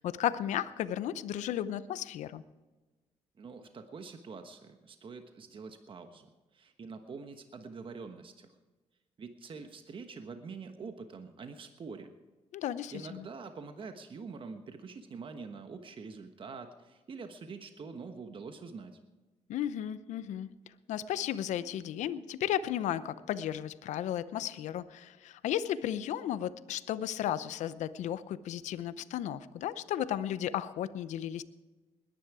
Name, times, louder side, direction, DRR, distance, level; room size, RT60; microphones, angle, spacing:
voice 1, 0.0-2.4 12.5-13.3 19.5-20.5 20.9-31.4, left 11 dB, 80° left, 15 dB, 0.7 m, -34 dB
voice 2, 3.4-8.5 9.2-12.1 12.9-19.0, right 4 dB, 45° right, 7 dB, 1.2 m, -45 dB
20.5 x 10.5 x 4.8 m, 1.2 s
cardioid pair, 80°, 12 cm